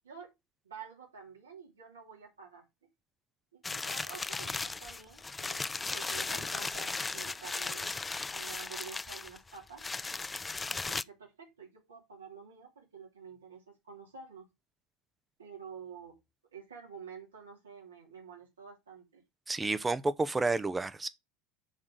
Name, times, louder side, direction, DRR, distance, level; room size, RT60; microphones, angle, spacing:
voice 1, 0.6-2.7 3.5-7.9 8.3-9.8 10.7-14.5 15.4-16.2 16.5-19.2, right 6 dB, 85° right, 2.9 m, -49 dB
sound 1, 3.6-11.0, left 3 dB, 15° left, 0.3 m, -36 dB
voice 2, 19.5-21.1, right 3 dB, 15° right, 0.7 m, -30 dB
6.4 x 3.7 x 6.1 m
hypercardioid pair, 80°, 0 cm